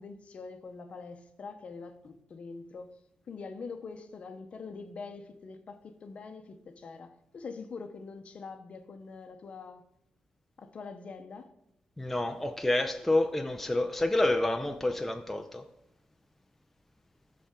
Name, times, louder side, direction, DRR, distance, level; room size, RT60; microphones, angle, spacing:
voice 1, 0.0-3.0 3.3-9.8 10.6-11.5, left 4 dB, 45° left, 0.8 m, -44 dB
voice 2, 12.0-15.6, left 2 dB, 5° left, 0.5 m, -28 dB
13.0 x 4.3 x 3.7 m
wide cardioid pair, 140°, 3 cm